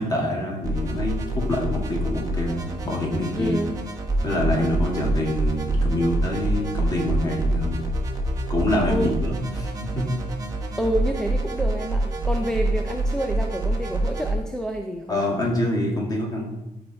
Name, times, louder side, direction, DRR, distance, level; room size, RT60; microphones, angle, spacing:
voice 1, 0.0-3.6 4.2-7.9 8.5-10.1 15.1-16.5, left 1 dB, 25° left, -1 dB, 2.1 m, -26 dB
sound 1, 0.6-14.3, right 1 dB, 20° right, 1.3 m, -26 dB
voice 2, 3.4-3.8 8.9-9.1 10.8-15.2, equal, 5° left, 2 dB, 0.5 m, -28 dB
13.5 x 4.7 x 4.2 m, 0.95 s
cardioid pair, 160°, 16 cm